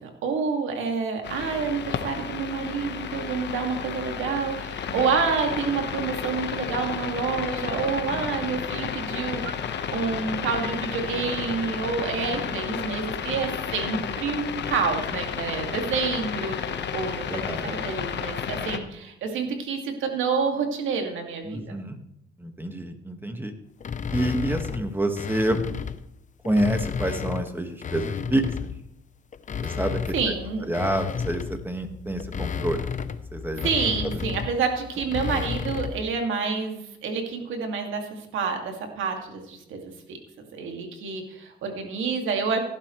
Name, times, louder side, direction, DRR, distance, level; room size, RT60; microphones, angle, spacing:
voice 1, 0.0-9.6 9.9-16.6 16.9-21.8 30.1-30.7 33.6-42.6, right 5 dB, 80° right, 3 dB, 2.3 m, -28 dB
sound 1, 1.2-18.8, left 7 dB, 60° left, 1.2 m, -32 dB
voice 2, 17.3-17.8 21.4-22.0 22.4-23.5 24.1-25.6 26.4-28.7 29.6-30.1 30.6-32.9 33.3-33.7 34.0-34.2, right 1 dB, 10° right, 6 dB, 1.7 m, -28 dB
sound 2, 23.8-26.0 26.4-28.9 29.3-36.1, left 6 dB, 40° left, 0.7 m, -32 dB
17.0 x 11.0 x 3.2 m, 0.79 s
cardioid pair, 90°, 20 cm